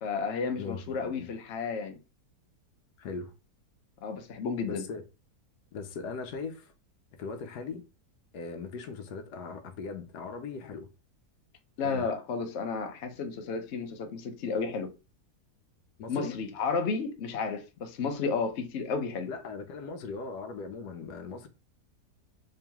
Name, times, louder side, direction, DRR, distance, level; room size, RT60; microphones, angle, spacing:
voice 1, 0.0-2.0 4.0-4.8 11.8-14.9 16.1-19.3, left 5 dB, 60° left, 0.8 m, -32 dB
voice 2, 0.6-1.3 3.0-3.3 4.6-5.0 5.7-6.7 7.2-7.8 8.3-10.9 11.8-12.1 16.0-16.4 19.3-21.5, left 5 dB, 75° left, 1.2 m, -39 dB
3.6 x 2.9 x 3.4 m
omnidirectional pair, 1.8 m